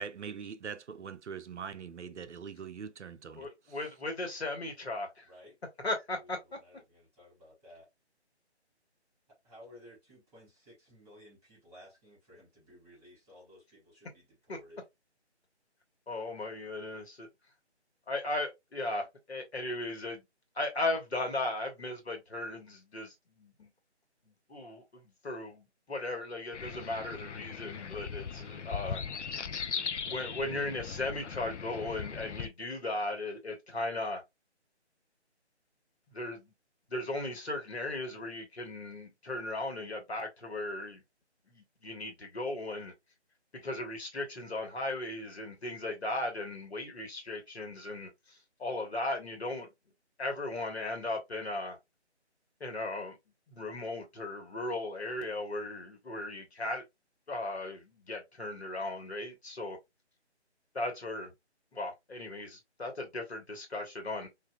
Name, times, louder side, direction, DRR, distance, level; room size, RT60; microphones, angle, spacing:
voice 1, 0.0-3.8, right 6 dB, 85° right, 0.5 m, -42 dB
voice 2, 3.4-5.2 5.8-6.4 14.5-14.6 16.1-17.3 18.1-20.2 20.5-23.7 24.5-29.0 30.0-34.2 36.1-36.5 36.9-41.0 41.5-42.9 43.6-48.1 48.6-49.7 50.2-51.8 52.6-53.2 53.5-56.8 57.3-59.8 60.7-61.3 61.7-64.3, left 2 dB, 65° left, 1.4 m, -37 dB
voice 3, 6.2-7.9 9.4-14.8, left 1 dB, 10° right, 2.3 m, -56 dB
sound 1, 26.5-32.5, left 6 dB, 85° left, 0.5 m, -39 dB
4.1 x 2.6 x 2.3 m
figure-of-eight pair, 160°, 34 cm